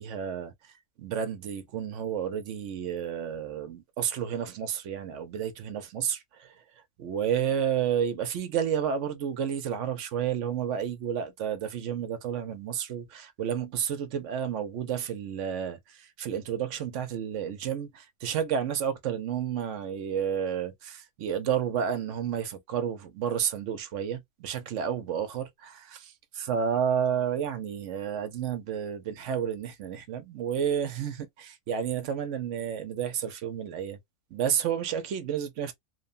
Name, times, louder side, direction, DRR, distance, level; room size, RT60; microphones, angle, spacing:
voice 1, 0.0-34.0 34.3-35.7, right 8 dB, 75° right, 1.0 m, -31 dB
2.9 x 2.1 x 2.5 m
omnidirectional pair, 1.3 m